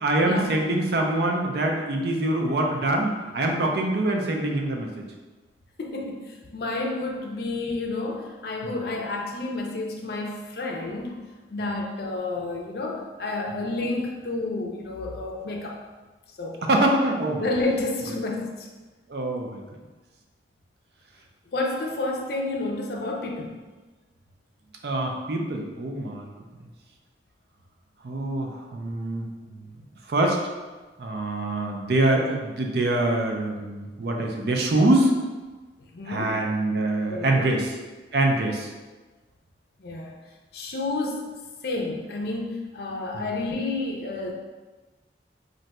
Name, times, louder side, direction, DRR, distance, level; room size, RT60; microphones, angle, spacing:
voice 1, 0.0-4.9 8.6-8.8 11.6-11.7 16.6-17.4 19.1-19.6 24.8-26.3 28.0-29.3 30.1-30.4 31.0-35.1 36.1-37.7 38.1-38.7 43.1-43.3, right 1 dB, 60° right, 1 dB, 0.4 m, -24 dB
voice 2, 5.8-11.2 11.5-15.8 16.4-16.6 17.4-18.7 21.5-23.5 35.5-35.6 35.9-36.4 37.1-37.5 39.8-40.2 40.5-41.3 41.6-44.3, left 2 dB, 60° left, 1 dB, 0.4 m, -30 dB
2.6 x 2.2 x 4.0 m, 1.2 s
head